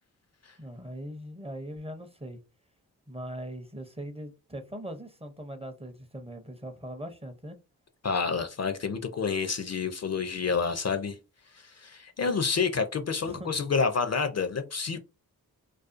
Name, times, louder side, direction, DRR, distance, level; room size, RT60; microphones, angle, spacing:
voice 1, 0.6-2.4 3.1-7.6 13.2-13.6, equal, 15° right, 0.5 m, -40 dB
voice 2, 8.0-11.2 11.5-15.0, left 5 dB, 45° left, 0.4 m, -29 dB
2.4 x 2.3 x 2.5 m
cardioid pair, 45°, 38 cm